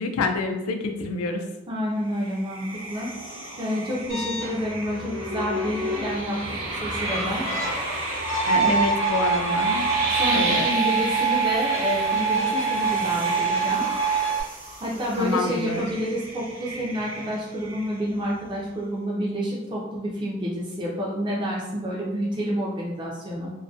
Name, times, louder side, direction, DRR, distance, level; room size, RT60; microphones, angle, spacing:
voice 1, 0.0-1.5 8.4-9.9 10.3-10.6 15.2-15.9, left 3 dB, 85° left, 5 dB, 0.3 m, -27 dB
voice 2, 1.7-3.1 3.6-6.4 6.7-7.5 8.5-8.9 10.0-13.9 14.8-23.5, equal, 20° right, -4 dB, 0.3 m, -29 dB
sound 1, 2.0-18.3, right 2 dB, 75° right, 0.6 m, -33 dB
sound 2, 4.1-14.4, right 5 dB, 60° left, 0.8 m, -26 dB
2.3 x 2.1 x 2.5 m, 0.98 s
head